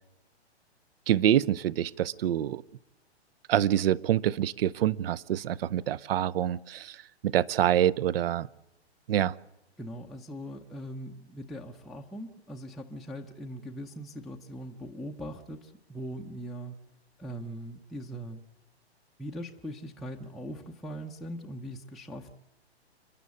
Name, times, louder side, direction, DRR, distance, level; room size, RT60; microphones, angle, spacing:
voice 1, 1.1-2.6 3.5-7.0 7.2-8.5 9.1-9.3, right 11 dB, 60° right, 20 dB, 0.7 m, -26 dB
voice 2, 9.8-16.8 17.2-18.4 19.2-22.3, equal, ahead, -1 dB, 0.6 m, -40 dB
29.0 x 11.5 x 8.3 m, 0.95 s
hypercardioid pair, 135°, 33 cm